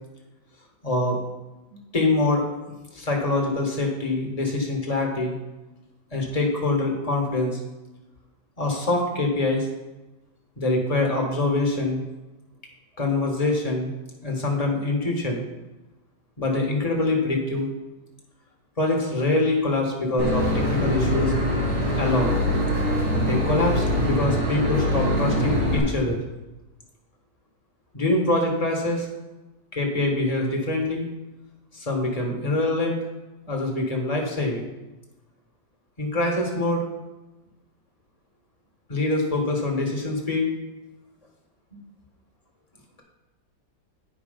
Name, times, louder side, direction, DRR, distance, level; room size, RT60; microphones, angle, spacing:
voice 1, 0.8-1.2 1.9-2.4 2.9-5.3 6.1-7.6 8.6-9.7 10.6-12.0 13.0-13.9 14.2-15.4 16.4-17.7 18.8-21.3 21.9-22.4 23.3-26.2 27.9-29.1 29.7-31.1 31.7-33.0 33.5-34.7 36.0-36.8 38.9-40.5, left 2 dB, 20° left, 0 dB, 1.4 m, -24 dB
Boat Water vehicle / Engine, 20.2-25.8, equal, 65° right, 3.3 m, -23 dB
10.0 x 4.9 x 5.1 m, 1.1 s
omnidirectional pair, 1.9 m